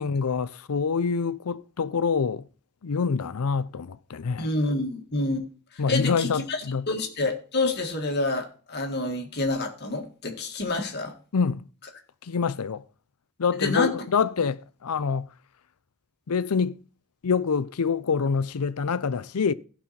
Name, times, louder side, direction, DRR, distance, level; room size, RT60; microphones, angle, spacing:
voice 1, 0.0-2.5 2.8-4.5 5.8-6.9 11.3-11.6 12.3-12.8 13.4-15.3 16.3-16.8 17.2-19.5, left 5 dB, 85° left, 0.6 m, -26 dB
voice 2, 4.4-5.4 5.7-11.1 13.6-13.9, left 2 dB, 50° left, 1.9 m, -28 dB
16.0 x 5.6 x 4.3 m
head